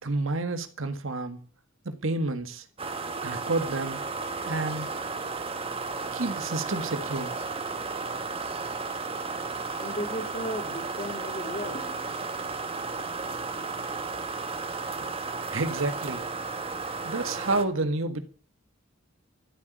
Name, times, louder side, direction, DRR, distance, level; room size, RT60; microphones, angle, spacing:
voice 1, 0.0-1.4 1.9-2.6 3.2-4.0 4.5-4.9 6.1-7.3 15.5-16.2 17.0-18.2, right 2 dB, 75° right, 1.7 m, -29 dB
sound 1, 2.8-17.6, right 4 dB, 30° right, 1.5 m, -34 dB
voice 2, 9.8-12.2, equal, 35° left, 3.3 m, -36 dB
13.5 x 8.3 x 9.1 m
head